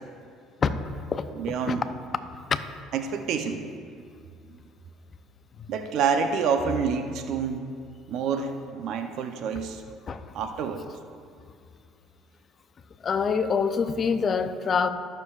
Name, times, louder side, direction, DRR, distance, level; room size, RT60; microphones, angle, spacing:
voice 1, 1.4-1.8 2.9-3.7 5.7-7.7 8.1-9.8 10.3-10.8, right 6 dB, 65° right, 6 dB, 0.6 m, -28 dB
voice 2, 13.0-14.9, left 5 dB, 40° left, 9 dB, 0.6 m, -25 dB
20.0 x 6.7 x 2.4 m, 2.3 s
supercardioid pair, 95°, 0 cm